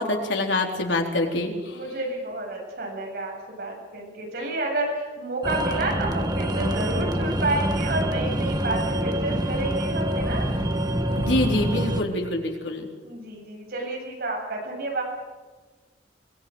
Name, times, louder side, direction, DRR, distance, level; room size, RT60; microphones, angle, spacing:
voice 1, 0.0-1.8 11.2-12.9, left 2 dB, 85° left, 2 dB, 3.9 m, -25 dB
voice 2, 1.7-10.5 13.0-15.0, right 2 dB, 60° right, 0 dB, 7.6 m, -30 dB
sound 1, 5.4-12.0, right 1 dB, 25° right, 1.5 m, -26 dB
23.5 x 21.0 x 7.9 m, 1.3 s
head